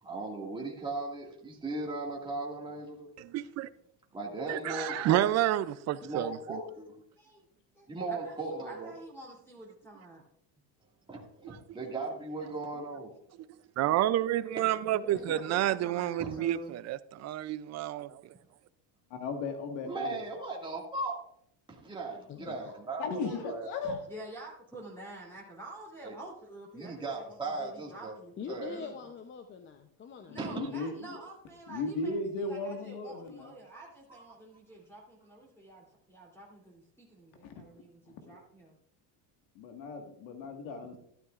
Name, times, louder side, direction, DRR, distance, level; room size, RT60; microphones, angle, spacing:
voice 1, 0.0-3.1 4.1-5.2 6.0-7.0 7.9-8.9 11.1-13.1 16.2-16.3 19.8-21.1 21.7-23.7 26.0-26.1 26.7-28.1 28.5-28.9 30.4-30.7 34.1-34.2, right 3 dB, 10° right, 1.9 m, -37 dB
voice 2, 3.2-3.7 4.5-6.6 11.4-11.6 13.8-18.2, right 13 dB, 40° right, 0.4 m, -29 dB
voice 3, 4.4-5.1 7.2-7.4 7.7-10.2 14.9-16.8 22.6-22.8 23.2-23.4 23.8-28.9 30.3-38.8, right 2 dB, 5° left, 3.0 m, -48 dB
voice 4, 15.1-15.7 22.3-22.7 28.4-30.4, left 6 dB, 25° left, 0.6 m, -44 dB
voice 5, 19.1-20.2 20.5-20.6 23.0-24.0 30.3-31.2 31.7-33.5 37.4-37.6 38.2-38.4 39.6-41.0, left 3 dB, 75° left, 1.8 m, -36 dB
12.5 x 12.0 x 2.4 m
cardioid pair, 130°, 46 cm